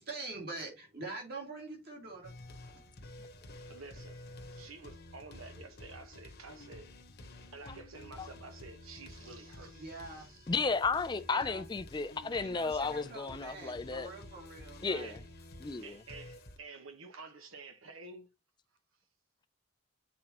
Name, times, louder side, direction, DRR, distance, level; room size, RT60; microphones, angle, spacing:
voice 1, 0.0-2.8 9.7-10.3 11.3-11.6 12.3-15.2, right 3 dB, 45° right, 2.5 m, -45 dB
sound 1, 2.2-16.6, left 1 dB, 50° left, 1.0 m, -51 dB
voice 2, 3.7-4.2 4.5-6.9 7.5-10.5 14.9-15.2 15.7-18.3, right 3 dB, 75° right, 1.1 m, -50 dB
voice 3, 10.5-14.1 14.8-15.1 15.6-16.0, left 4 dB, 20° left, 0.3 m, -33 dB
7.6 x 4.3 x 2.9 m
head